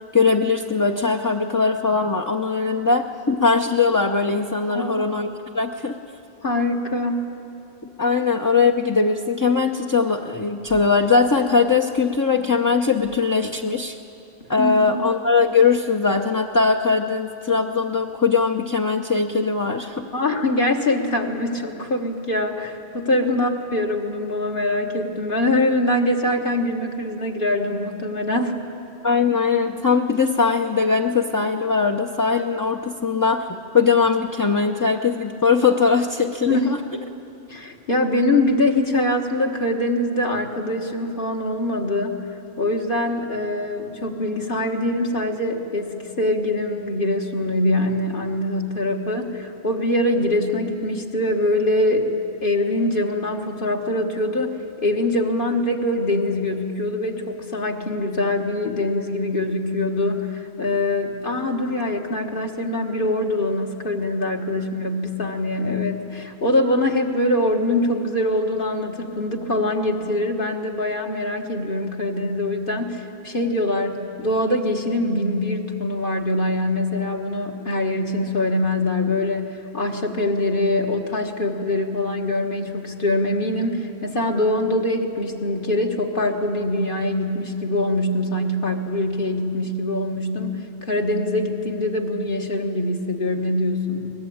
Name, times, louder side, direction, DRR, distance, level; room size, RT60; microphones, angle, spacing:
voice 1, 0.1-5.3 5.5-6.0 8.0-14.0 14.5-20.1 23.3-23.4 29.0-36.8, left 5 dB, 20° left, 2 dB, 0.7 m, -20 dB
voice 2, 4.7-5.0 6.4-7.3 14.6-15.0 20.1-28.6 36.4-36.8 37.5-42.2 42.6-52.1 52.4-94.1, left 1 dB, 55° left, 2 dB, 1.8 m, -23 dB
23.0 x 19.5 x 8.6 m, 2.8 s
omnidirectional pair, 1.1 m